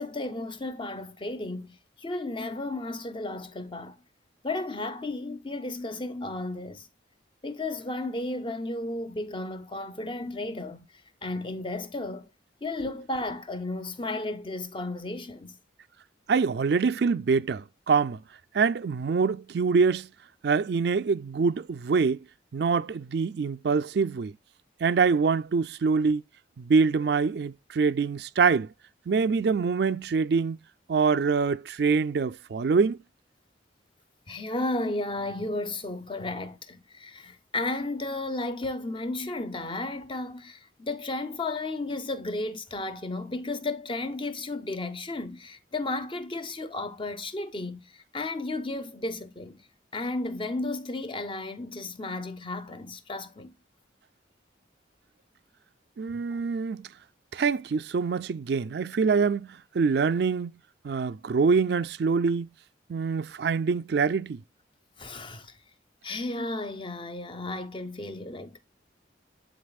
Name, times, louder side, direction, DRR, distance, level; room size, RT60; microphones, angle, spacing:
voice 1, 0.0-4.0 4.4-6.9 7.4-12.3 12.6-15.6 34.3-49.7 49.9-53.5 56.1-56.4 65.0-65.6 66.0-68.6, left 2 dB, 25° left, 0.7 m, -34 dB
voice 2, 16.3-18.2 18.5-20.1 20.4-22.2 22.5-24.3 24.8-26.2 26.6-28.7 29.1-30.6 30.9-33.0 56.0-56.9 57.3-60.5 60.8-62.5 62.9-64.4, right 5 dB, 55° right, 0.4 m, -25 dB
11.0 x 3.9 x 2.3 m
head